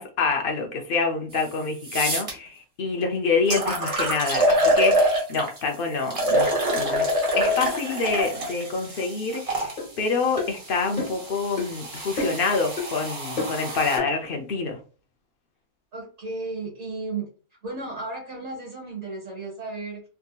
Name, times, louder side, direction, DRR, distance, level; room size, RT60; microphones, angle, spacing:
voice 1, 0.0-14.8, left 4 dB, 55° left, 3 dB, 0.6 m, -27 dB
sound 1, 1.3-1.4 1.8-2.3 3.0-3.1 3.5-5.6 6.1-9.7 10.5-14.0, equal, 30° right, 0.7 m, -25 dB
sound 2, 9.8-9.9 10.4-10.5 11.0-11.2 11.6-11.7 12.2-12.5 12.8-12.9 13.4-13.6 14.0-14.1, left 3 dB, 35° left, 1.1 m, -29 dB
voice 2, 15.9-17.3 17.6-20.0, right 3 dB, 50° right, -4 dB, 1.5 m, -34 dB
3.5 x 2.8 x 2.3 m, 0.38 s
omnidirectional pair, 1.5 m